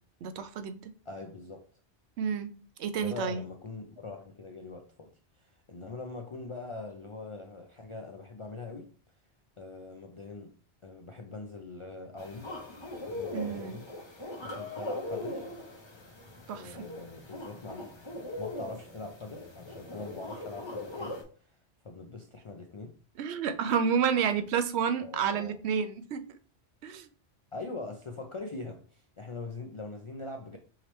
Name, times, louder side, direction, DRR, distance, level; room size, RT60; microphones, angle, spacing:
voice 1, 0.2-0.9 2.2-2.5 2.8-3.4 13.3-13.8 16.5-16.8 23.2-26.2 26.8-27.1, right 7 dB, 75° right, 0.8 m, -30 dB
voice 2, 1.1-1.6 2.9-5.1 5.4-8.9 9.6-10.5 10.8-12.5 13.0-15.5 16.5-17.9 18.4-21.5 21.8-22.9 25.0-25.5 27.5-30.6, left 3 dB, 55° left, 0.3 m, -42 dB
sound 1, 12.2-21.2, left 2 dB, 25° left, 0.8 m, -40 dB
4.9 x 2.9 x 3.1 m
omnidirectional pair, 1.1 m